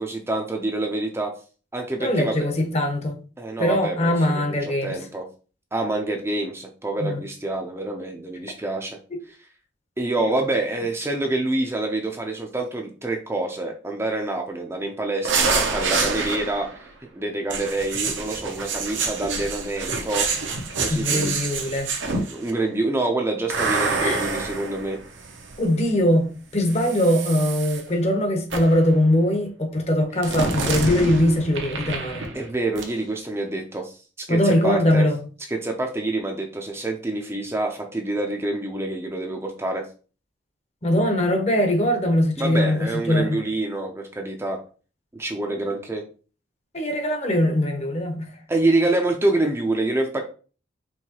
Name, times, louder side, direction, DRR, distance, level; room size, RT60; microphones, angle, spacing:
voice 1, 0.0-1.3 1.7-2.5 3.4-5.3 5.7-9.0 10.0-20.4 20.8-21.3 22.1-25.0 32.3-35.1 35.5-39.9 42.4-44.6 45.1-46.0 48.5-50.2, right 2 dB, 15° right, 0.5 m, -27 dB
voice 2, 2.0-3.1 3.6-5.0 7.0-7.2 10.2-10.4 20.9-21.9 24.0-24.3 25.6-32.3 34.3-35.2 40.8-43.4 46.7-48.3, left 1 dB, 35° left, 0.8 m, -21 dB
sound 1, 15.3-16.8 17.5-22.5 23.5-25.7 26.6-27.8 28.5-28.9 30.2-32.5 32.8-32.9, right 4 dB, 80° right, 0.8 m, -27 dB
4.6 x 3.1 x 2.9 m
head